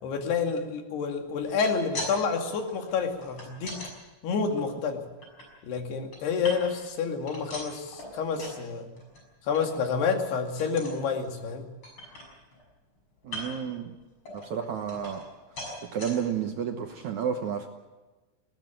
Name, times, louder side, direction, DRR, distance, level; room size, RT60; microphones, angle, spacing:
voice 1, 0.0-3.8 4.2-5.0 5.6-8.9 9.5-11.7, left 5 dB, 80° left, 4 dB, 4.3 m, -29 dB
sound 1, 1.3-2.1 2.4-3.9 4.4-5.4 5.9-6.9 7.2-8.6 9.0-9.2 9.5-9.6 10.0-10.2 10.6-11.0 11.5-11.6 11.8-12.6 13.2-13.7 14.2-15.3 15.6-16.1 16.7-16.8 17.1-17.2, left 1 dB, 30° left, 7.0 m, -40 dB
voice 2, 13.2-14.0 14.3-15.2 15.9-17.7, right 8 dB, 65° right, 4 dB, 2.0 m, -31 dB
20.0 x 17.5 x 9.1 m, 1.2 s
omnidirectional pair, 4.7 m